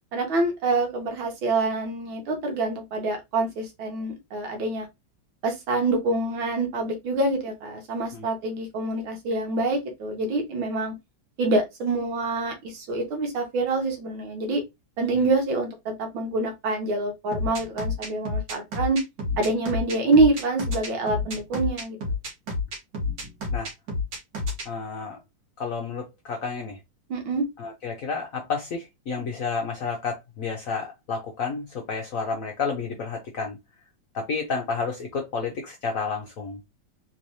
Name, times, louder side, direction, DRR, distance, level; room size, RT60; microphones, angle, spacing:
voice 1, 0.1-4.9 5.4-11.0 11.4-14.6 15.0-19.0 19.4-22.0 27.1-27.4, right 2 dB, 80° right, 1.9 m, -26 dB
sound 1, 17.3-24.7, left 3 dB, 60° right, 1.9 m, -29 dB
voice 2, 24.7-25.2 25.6-26.8 27.6-33.6 34.1-36.6, left 5 dB, 65° left, 0.8 m, -31 dB
3.9 x 3.1 x 2.6 m
omnidirectional pair, 2.1 m